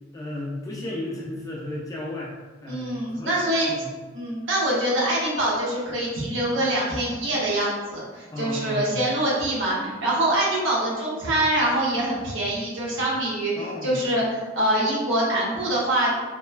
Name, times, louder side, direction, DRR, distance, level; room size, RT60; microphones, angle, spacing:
voice 1, 0.1-2.3 2.6-3.4 3.8-3.9 8.3-9.1 13.6-14.0, left 1 dB, 15° left, -5 dB, 0.4 m, -33 dB
voice 2, 2.7-3.7 4.1-16.1, right 1 dB, 70° right, -5 dB, 0.9 m, -24 dB
2.9 x 2.1 x 2.3 m, 1.3 s
head